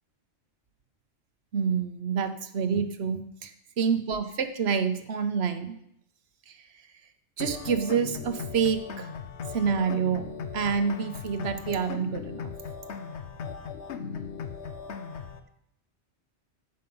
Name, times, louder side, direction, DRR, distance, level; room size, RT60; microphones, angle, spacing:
voice 1, 1.5-3.5 3.8-5.8 6.5-6.6 7.4-9.1 9.5-10.3 10.5-12.5, right 6 dB, 60° right, 10 dB, 1.1 m, -27 dB
sound 1, 7.4-15.4, left 6 dB, 70° left, 1.1 m, -38 dB
14.0 x 5.7 x 5.4 m, 0.76 s
omnidirectional pair, 1.3 m